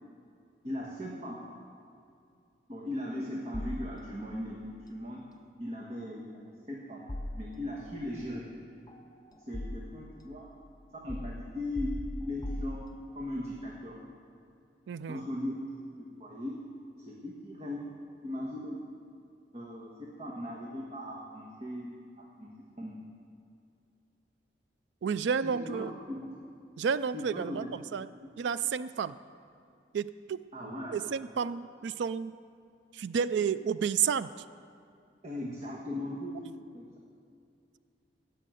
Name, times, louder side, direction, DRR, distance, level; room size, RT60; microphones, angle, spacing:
voice 1, 0.6-1.3 2.7-5.2 5.6-7.0 7.3-8.5 9.5-10.4 11.0-12.8 13.1-13.9 15.1-15.7 16.0-16.5 17.0-17.8 18.2-18.7 19.5-19.9 20.2-22.9 25.4-26.3 27.1-27.7 28.0-28.3 30.5-31.0 35.2-36.4 36.7-36.8, left 1 dB, 35° right, -3 dB, 1.4 m, -38 dB
sound 1, 3.5-4.4 7.1-8.0 8.9-10.2 11.1-13.3, left 1 dB, 20° left, 0.5 m, -40 dB
voice 2, 14.9-15.3 25.0-25.9 26.8-27.7 27.9-28.1 28.4-29.1 29.9-30.4 30.9-32.4 32.9-34.3, right 7 dB, 80° right, 15 dB, 0.4 m, -31 dB
17.5 x 6.5 x 7.7 m, 2.4 s
head